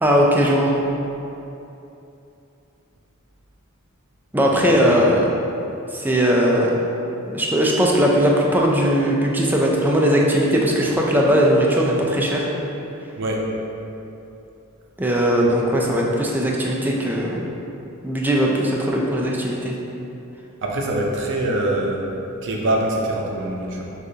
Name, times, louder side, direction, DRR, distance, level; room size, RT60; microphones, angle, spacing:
voice 1, 0.0-0.8 4.3-5.3 5.9-6.8 7.3-12.5 15.0-17.5 18.0-19.7, equal, 10° right, -2 dB, 0.4 m, -19 dB
voice 2, 20.6-22.1 22.4-23.9, right 1 dB, 60° right, -1 dB, 0.6 m, -23 dB
6.4 x 2.4 x 2.7 m, 2.9 s
head